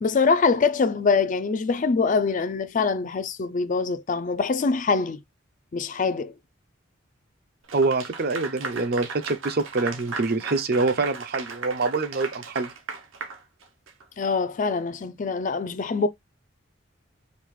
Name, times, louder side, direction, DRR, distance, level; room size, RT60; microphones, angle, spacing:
voice 1, 0.0-5.2 5.7-6.3 14.2-16.1, left 4 dB, 40° left, 0.4 m, -24 dB
voice 2, 7.7-12.7, right 3 dB, 50° right, 0.6 m, -25 dB
Clapping / Applause, 7.7-14.0, right 4 dB, 75° right, 0.9 m, -36 dB
5.2 x 2.4 x 3.1 m
head